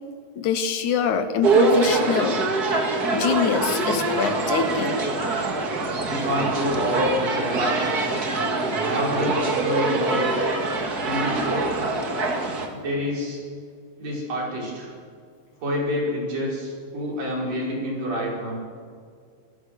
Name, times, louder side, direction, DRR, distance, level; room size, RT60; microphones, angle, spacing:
voice 1, 0.4-2.4 3.1-5.0, left 7 dB, 70° left, 9 dB, 2.2 m, -24 dB
sound 1, 1.4-12.7, right 3 dB, 35° right, 2.0 m, -24 dB
voice 2, 6.1-8.2 8.9-10.2 11.0-11.9 12.7-13.4 14.0-14.9 15.6-18.6, equal, 75° right, -2 dB, 7.0 m, -28 dB
28.0 x 17.5 x 6.6 m, 2.1 s
omnidirectional pair, 3.9 m